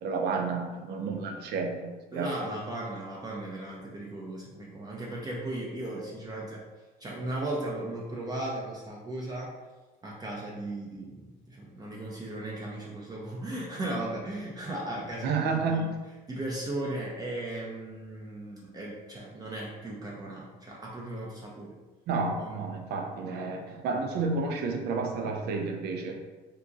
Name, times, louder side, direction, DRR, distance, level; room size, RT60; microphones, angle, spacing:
voice 1, 0.0-2.3 15.2-16.0 22.1-26.2, right 4 dB, 75° right, 3 dB, 0.5 m, -31 dB
voice 2, 2.1-6.6 7.0-9.5 10.0-15.9 16.3-21.8 22.3-22.9, right 1 dB, 25° right, -4 dB, 0.6 m, -36 dB
2.9 x 2.4 x 3.7 m, 1.2 s
cardioid pair, 110°, 17 cm